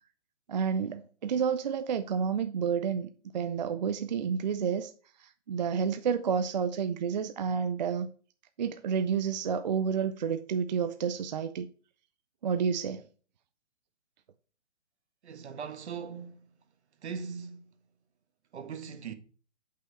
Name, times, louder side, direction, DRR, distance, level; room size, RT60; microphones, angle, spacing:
voice 1, 0.5-3.1 3.3-4.9 5.2-8.1 8.6-11.7 12.4-13.0, right 7 dB, 40° right, 0.4 m, -30 dB
voice 2, 15.2-16.4 17.0-17.7 18.5-19.1, right 6 dB, 65° right, 1.2 m, -39 dB
6.2 x 5.6 x 4.5 m
hypercardioid pair, 145°, 36 cm